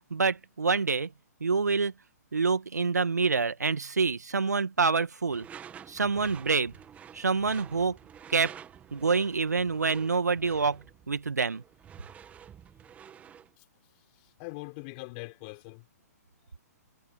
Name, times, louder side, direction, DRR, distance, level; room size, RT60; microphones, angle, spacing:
voice 1, 0.1-1.1 1.4-1.9 2.3-5.5 5.9-6.7 7.1-8.0 8.3-8.5 8.9-11.6, right 4 dB, 80° right, 2.1 m, -27 dB
Door / Screech, 5.3-13.5, right 8 dB, 15° right, 2.1 m, -49 dB
voice 2, 13.9-15.9, left 31 dB, 35° left, 4.3 m, -43 dB
figure-of-eight pair, 125°, 9 cm